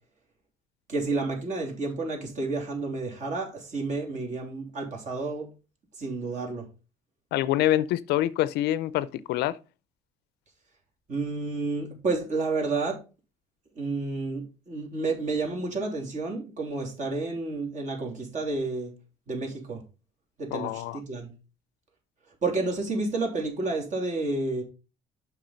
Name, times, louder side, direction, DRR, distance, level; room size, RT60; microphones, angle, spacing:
voice 1, 0.9-5.5 6.0-6.7 11.1-13.0 13.8-18.9 19.3-19.8 20.4-21.3 22.4-24.6, right 3 dB, 45° right, 3.1 m, -30 dB
voice 2, 7.3-9.6 20.5-21.0, left 14 dB, 85° left, 0.5 m, -26 dB
7.5 x 5.9 x 3.9 m
cardioid pair, 110°, 17 cm